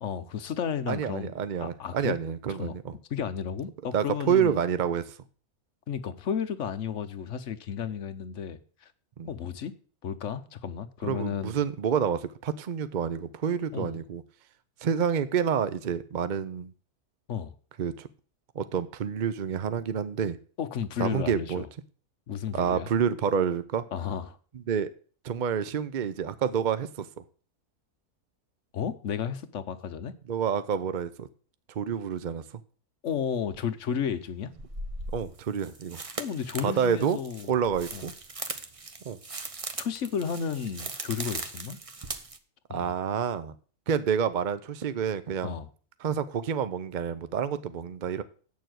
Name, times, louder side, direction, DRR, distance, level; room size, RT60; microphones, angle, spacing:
voice 1, 0.0-1.3 1.6-2.2 2.6-2.8 3.1-4.6 5.9-8.9 9.2-9.7 10.0-11.5 13.7-14.0 17.3-17.5 20.6-21.7 22.3-22.9 23.9-24.4 28.7-30.1 33.0-34.5 36.2-37.6 37.9-38.1 39.8-41.8 42.7-42.9 45.4-45.7, left 7 dB, 55° left, 1.1 m, -33 dB
voice 2, 0.9-2.9 3.9-5.2 9.2-9.3 11.0-14.2 14.8-16.7 17.8-18.1 18.5-20.4 21.0-21.6 22.5-23.8 24.7-24.9 25.2-27.2 30.3-31.3 31.7-32.4 35.1-36.0 36.6-37.2 37.5-38.1 39.0-39.2 42.7-43.5 43.9-45.5 46.0-48.2, right 7 dB, 60° right, 0.5 m, -28 dB
sound 1, 33.5-33.6 34.5-42.4, right 3 dB, 30° right, 0.7 m, -39 dB
8.5 x 6.8 x 7.7 m
omnidirectional pair, 1.6 m